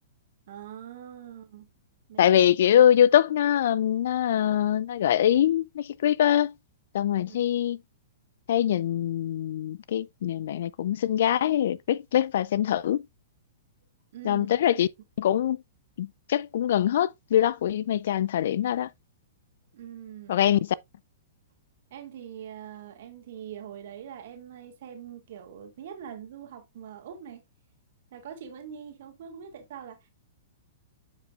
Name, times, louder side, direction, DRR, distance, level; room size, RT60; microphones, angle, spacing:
voice 1, 0.5-1.7 2.1-2.3 7.3-7.5 14.1-14.5 19.7-20.4 21.9-27.4 28.1-30.1, right 9 dB, 60° right, 2.2 m, -43 dB
voice 2, 2.2-6.5 6.9-7.8 8.5-13.1 14.2-14.9 15.2-15.6 16.0-18.9 20.3-20.6, left 10 dB, 65° left, 0.4 m, -23 dB
9.8 x 5.1 x 2.4 m
hypercardioid pair, 120°, 0 cm